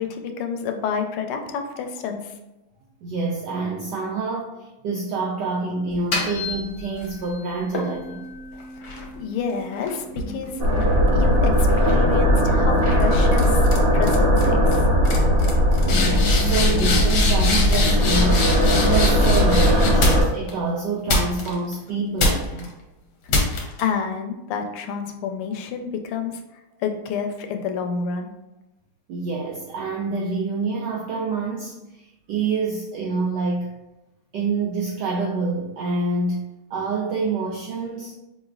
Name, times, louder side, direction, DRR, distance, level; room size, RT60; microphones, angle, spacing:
voice 1, 0.0-2.3 9.2-10.6 11.1-13.6 13.9-14.9 23.8-26.4 26.8-28.3, left 6 dB, 85° left, 5 dB, 1.4 m, -29 dB
voice 2, 3.0-8.3 15.8-22.7 29.1-33.7 34.3-38.1, right 4 dB, 80° right, -1 dB, 0.9 m, -27 dB
sound 1, 5.9-7.1 7.7-11.3 11.7-12.1 12.8-13.0 13.3-13.8 14.0-14.4 14.7-14.8 15.0-20.5 21.1-21.7 22.2-22.7 23.3-23.8, left 2 dB, 65° left, 1.2 m, -25 dB
sound 2, 10.6-20.2, equal, 60° right, 0.5 m, -18 dB
4.8 x 3.1 x 2.3 m, 0.96 s
omnidirectional pair, 2.3 m